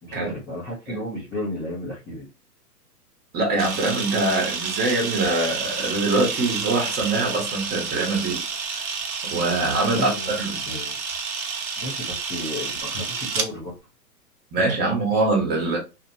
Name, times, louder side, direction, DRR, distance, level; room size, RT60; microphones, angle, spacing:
voice 1, 0.0-2.3 9.9-10.3 10.7-11.0 11.8-13.8, left 1 dB, 10° left, 0.5 m, -33 dB
voice 2, 3.3-8.4 9.2-10.1 10.4-10.6 14.5-15.8, right 2 dB, 20° right, 1.0 m, -23 dB
Camera, 3.6-13.5, right 5 dB, 60° right, 0.8 m, -30 dB
2.8 x 2.1 x 2.6 m
hypercardioid pair, 115°, 48 cm